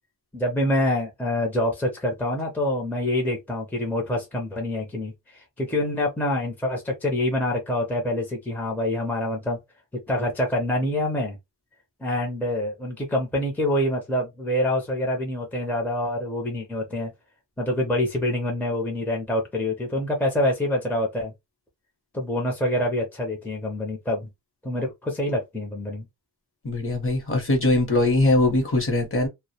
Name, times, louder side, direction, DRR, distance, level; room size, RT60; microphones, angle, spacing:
voice 1, 0.3-9.6 10.1-11.4 12.0-17.1 17.6-21.3 22.1-24.3 24.6-26.0, left 1 dB, 5° left, 0.5 m, -26 dB
voice 2, 26.6-29.3, left 2 dB, 35° left, 0.8 m, -21 dB
2.1 x 2.1 x 2.7 m
wide cardioid pair, 155°, 36 cm